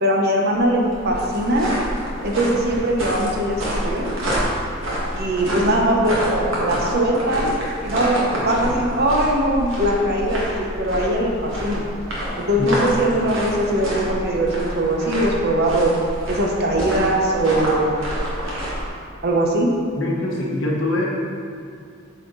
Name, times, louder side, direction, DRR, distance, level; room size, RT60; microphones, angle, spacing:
voice 1, 0.0-1.7 2.2-4.1 5.2-7.5 7.8-11.8 12.4-15.9 16.3-17.9 19.2-19.7, right 1 dB, 50° right, 0 dB, 0.9 m, -21 dB
sound 1, 0.5-18.9, equal, 70° right, 1.7 m, -28 dB
voice 2, 20.0-21.1, left 2 dB, 65° left, -3 dB, 1.2 m, -23 dB
8.5 x 4.3 x 4.0 m, 2.2 s
head